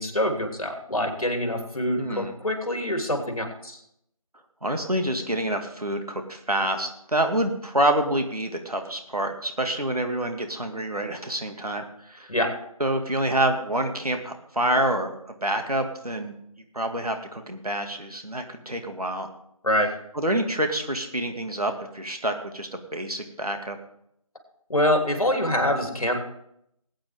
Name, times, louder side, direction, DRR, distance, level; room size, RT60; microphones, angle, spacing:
voice 1, 0.0-3.8 12.3-12.5 19.6-19.9 24.7-26.2, left 1 dB, 70° left, 3 dB, 3.1 m, -25 dB
voice 2, 2.0-2.3 4.6-12.3 12.8-16.3 16.7-19.3 20.1-23.8, right 1 dB, 85° right, 5 dB, 2.2 m, -27 dB
19.0 x 8.9 x 3.6 m, 0.75 s
figure-of-eight pair, 165°, 19 cm